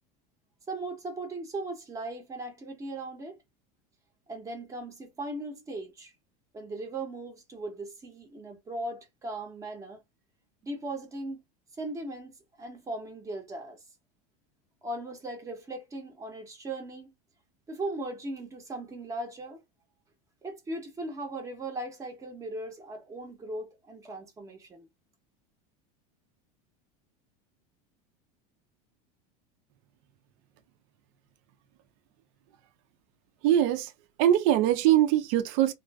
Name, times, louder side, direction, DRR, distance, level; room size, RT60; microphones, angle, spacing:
voice 1, 0.7-3.4 4.3-6.1 6.5-10.0 10.6-11.4 11.8-13.8 14.8-17.1 17.7-19.6 20.4-24.9, right 2 dB, 15° right, 0.7 m, -38 dB
voice 2, 33.4-33.9 34.2-35.7, right 12 dB, 60° right, 0.5 m, -22 dB
2.5 x 2.3 x 2.2 m
supercardioid pair, 145°, 20 cm